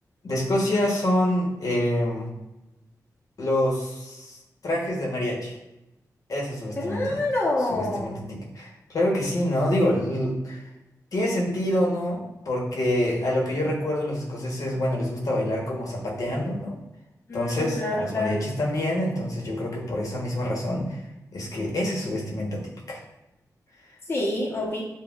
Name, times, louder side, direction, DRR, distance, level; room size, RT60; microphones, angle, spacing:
voice 1, 0.2-2.3 3.4-4.4 4.6-5.5 6.3-7.2 7.6-10.6 11.1-16.8 17.3-21.0 21.3-23.0, left 1 dB, 60° left, -2 dB, 1.1 m, -26 dB
voice 2, 6.8-8.2 17.3-18.3 24.1-24.8, left 2 dB, 40° left, -5 dB, 0.9 m, -27 dB
7.1 x 2.4 x 2.4 m, 0.95 s
wide cardioid pair, 100°, 7 cm